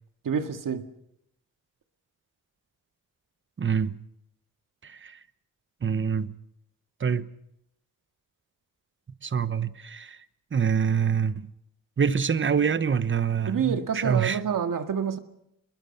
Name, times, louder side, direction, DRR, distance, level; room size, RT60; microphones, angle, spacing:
voice 1, 0.2-0.9 13.5-15.2, right 7 dB, 70° right, 1.9 m, -27 dB
voice 2, 3.6-4.0 4.8-5.2 5.8-6.3 7.0-7.3 9.2-10.2 10.5-11.5 12.0-14.4, right 7 dB, 35° right, 1.0 m, -26 dB
27.5 x 21.5 x 5.5 m
wide cardioid pair, 125°, 34 cm